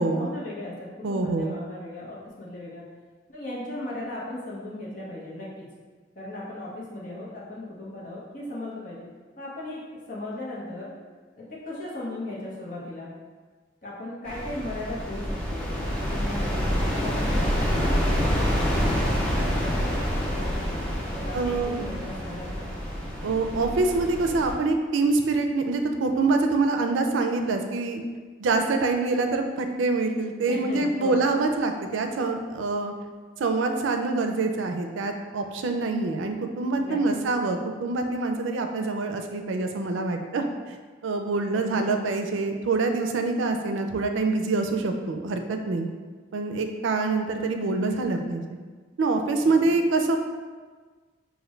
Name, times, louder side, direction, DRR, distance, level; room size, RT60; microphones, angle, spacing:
voice 1, 0.0-2.8 3.3-5.7 6.1-9.1 9.4-9.8 10.1-10.9 11.3-13.1 13.8-18.2 18.6-20.8 21.1-22.7 30.5-31.2 36.8-37.0 41.3-41.9 49.4-49.5, left 1 dB, 45° left, -6 dB, 1.0 m, -37 dB
voice 2, 1.0-1.5 21.3-21.8 23.2-28.0 28.4-32.9 33.4-40.4 41.0-45.9 46.3-48.4 49.0-50.2, right 3 dB, 90° right, 5 dB, 0.4 m, -25 dB
sound 1, 14.3-24.5, equal, 5° left, 0.6 m, -27 dB
5.0 x 2.5 x 3.2 m, 1.4 s
head